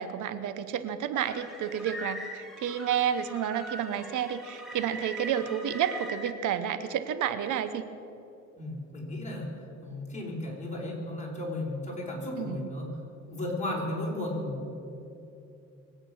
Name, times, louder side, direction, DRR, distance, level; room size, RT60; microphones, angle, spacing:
voice 1, 0.0-7.8 12.4-12.7, right 9 dB, 80° right, 12 dB, 0.9 m, -30 dB
sound 1, 1.2-6.3, right 1 dB, ahead, 3.0 m, -41 dB
voice 2, 8.6-13.0 13.3-14.8, left 1 dB, 25° left, -3 dB, 4.9 m, -34 dB
23.5 x 9.0 x 6.3 m, 2.8 s
cardioid pair, 90°, 30 cm